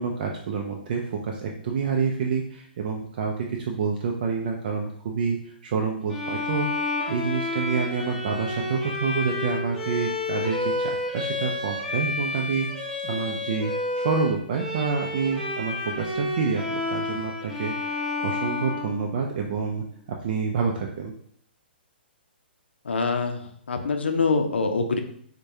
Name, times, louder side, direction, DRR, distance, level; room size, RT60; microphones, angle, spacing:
voice 1, 0.0-12.7 13.0-19.8 20.2-21.1, right 5 dB, 55° right, 1 dB, 0.4 m, -28 dB
Bowed string instrument, 6.1-19.6, left 2 dB, ahead, 0.9 m, -30 dB
voice 2, 22.8-25.0, left 4 dB, 90° left, 5 dB, 0.5 m, -25 dB
4.5 x 2.2 x 2.7 m, 0.64 s
hypercardioid pair, 140°, 6 cm